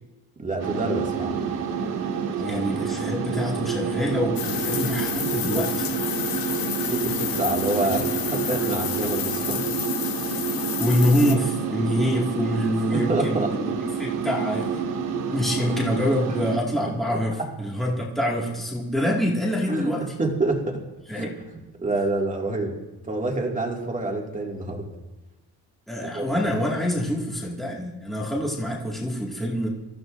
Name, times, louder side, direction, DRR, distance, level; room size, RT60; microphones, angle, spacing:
voice 1, 0.4-1.4 2.5-2.6 6.9-9.6 12.9-13.5 14.4-14.5 15.6-15.7 16.3-16.4 17.1-17.5 19.7-20.8 21.1-21.3 21.8-22.8 23.0-24.9 26.1-26.3, right 2 dB, 20° right, 0 dB, 2.2 m, -27 dB
sound 1, 0.6-16.6, right 6 dB, 85° right, 2.1 m, -28 dB
voice 2, 2.4-6.0 10.8-14.8 15.3-20.0 21.1-21.3 25.9-29.7, equal, ahead, -4 dB, 2.0 m, -26 dB
sound 2, 4.4-11.3, left 10 dB, 70° left, 1.0 m, -31 dB
26.5 x 14.0 x 2.6 m, 1.1 s
cardioid pair, 160°, 36 cm